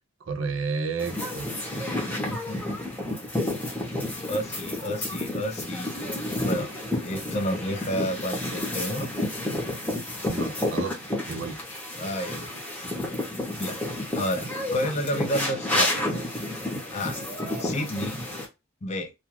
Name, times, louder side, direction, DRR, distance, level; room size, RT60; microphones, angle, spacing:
voice 1, 0.2-1.5 10.3-10.9 11.3-11.6, right 4 dB, 65° right, 0.4 m, -31 dB
sound 1, 1.0-18.5, left 1 dB, 10° left, 0.8 m, -30 dB
voice 2, 2.3-2.8 3.9-5.9 6.4-6.7 7.0-9.1 12.0-12.5 13.6-16.2 16.9-17.2 17.6-18.2 18.8-19.1, equal, 30° left, 0.4 m, -31 dB
2.4 x 2.3 x 2.9 m
head